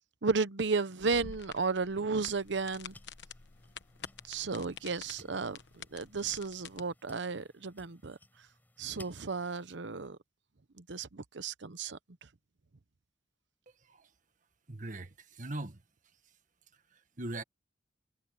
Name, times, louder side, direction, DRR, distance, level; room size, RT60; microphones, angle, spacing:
voice 1, 0.2-2.9 4.3-8.2 8.8-10.2 10.8-12.0, right 4 dB, 75° right, 0.9 m, -33 dB
sound 1, 1.0-6.8, left 6 dB, 75° left, 1.1 m, -49 dB
sound 2, 2.4-9.8, left 1 dB, 10° left, 6.2 m, -60 dB
voice 2, 14.7-15.8 16.9-17.4, right 2 dB, 45° right, 1.8 m, -41 dB
head